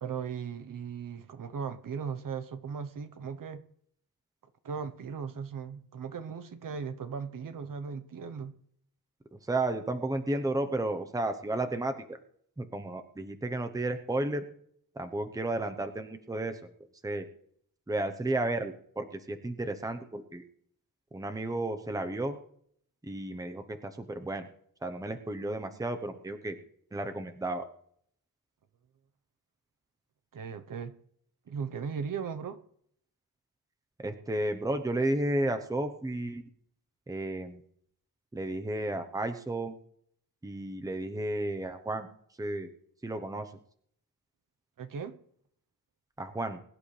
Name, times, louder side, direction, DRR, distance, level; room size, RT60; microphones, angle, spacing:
voice 1, 0.0-3.6 4.6-8.5 30.3-30.9 31.5-32.6 44.8-45.2, right 6 dB, 60° right, 1.0 m, -37 dB
voice 2, 9.5-12.2 12.6-14.4 15.0-16.6 17.0-17.3 17.9-20.4 21.1-22.3 23.0-24.5 24.8-26.6 26.9-27.7 34.0-36.4 37.1-37.6 38.3-39.7 40.4-42.1 42.4-42.7 43.0-43.5 46.2-46.6, right 2 dB, 10° right, 0.8 m, -32 dB
22.0 x 11.5 x 3.3 m
wide cardioid pair, 175°, 36 cm